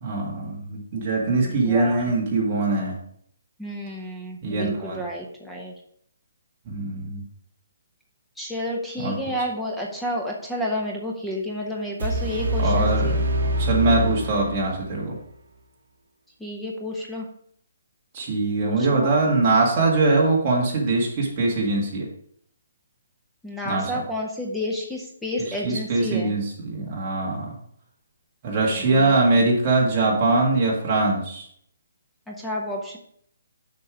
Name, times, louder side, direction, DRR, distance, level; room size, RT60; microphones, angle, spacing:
voice 1, 0.0-3.0 4.4-5.0 6.7-7.2 9.0-9.2 12.6-13.2 13.6-15.1 18.1-22.0 23.6-24.0 25.6-27.5 28.4-31.4, right 3 dB, 20° right, -3 dB, 1.7 m, -22 dB
voice 2, 1.5-2.0 3.6-5.7 8.4-13.2 16.4-17.2 18.6-19.2 23.4-26.3 28.8-29.5 32.3-33.0, left 1 dB, ahead, -1 dB, 0.6 m, -31 dB
sound 1, 12.0-15.0, equal, 50° right, 1.4 m, -25 dB
6.7 x 5.4 x 4.8 m, 0.65 s
hypercardioid pair, 175°, 0 cm